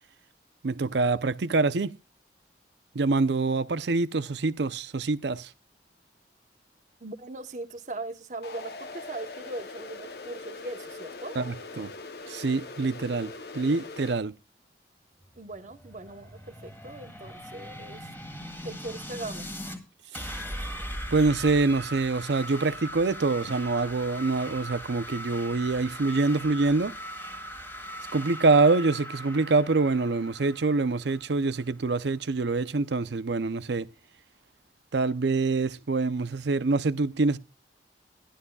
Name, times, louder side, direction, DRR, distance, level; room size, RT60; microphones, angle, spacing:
voice 1, 0.6-1.9 2.9-5.5 11.4-11.9 12.3-14.3 20.1-20.4 21.1-26.9 28.1-33.9 34.9-37.4, right 3 dB, 75° right, 0.6 m, -25 dB
voice 2, 7.0-11.4 15.4-18.1 18.6-19.5, right 2 dB, 40° right, 0.9 m, -39 dB
sound 1, 8.4-14.1, left 3 dB, 60° left, 0.8 m, -42 dB
sound 2, 15.1-19.8 20.1-31.7, equal, 10° left, 1.8 m, -40 dB
15.5 x 11.5 x 2.3 m
head